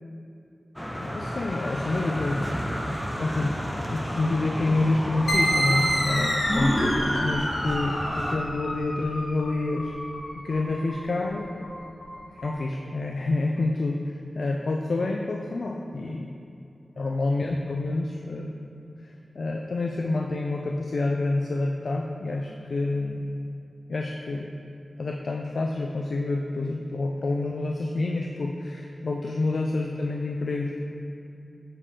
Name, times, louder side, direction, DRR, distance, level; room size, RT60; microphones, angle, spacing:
sound 1, 0.8-8.4, equal, 5° left, 0.5 m, -30 dB
voice 1, 1.0-2.6 3.2-6.9 7.2-9.9 10.3-11.7 12.3-16.3 17.0-18.6 19.0-23.3 23.9-24.5 25.0-30.8, left 2 dB, 65° left, 1 dB, 0.3 m, -28 dB
sound 2, 5.3-12.5, equal, 85° left, 0.8 m, -29 dB
7.2 x 3.5 x 4.2 m, 2.7 s
cardioid pair, 55°, 0 cm